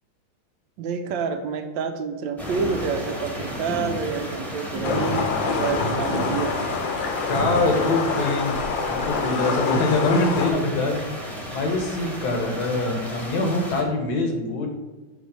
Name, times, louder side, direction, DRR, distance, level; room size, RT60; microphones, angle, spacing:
voice 1, 0.8-6.6 11.5-11.7, right 5 dB, 80° right, 7 dB, 1.3 m, -28 dB
sound 1, 2.4-13.8, equal, ahead, 0.9 m, -33 dB
sound 2, 4.8-10.5, left 5 dB, 75° left, 1.5 m, -26 dB
voice 2, 7.3-8.6 8.9-11.2 11.5-14.7, left 2 dB, 60° left, 2 dB, 1.3 m, -24 dB
6.0 x 3.2 x 5.3 m, 1.3 s
omnidirectional pair, 2.1 m